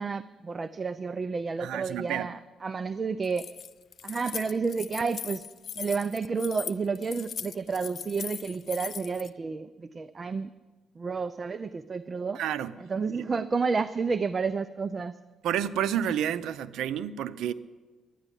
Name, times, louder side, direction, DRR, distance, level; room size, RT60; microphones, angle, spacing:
voice 1, 0.0-3.5 4.0-5.5 5.7-10.5 11.0-12.4 12.8-15.2, right 5 dB, 35° right, 0.5 m, -31 dB
voice 2, 1.6-2.3 12.4-12.7 13.1-13.3 15.4-17.5, right 10 dB, 80° right, 0.6 m, -30 dB
Keys jangling, 3.2-9.3, left 8 dB, 55° left, 0.4 m, -39 dB
12.0 x 9.9 x 9.9 m
cardioid pair, 90°, 0 cm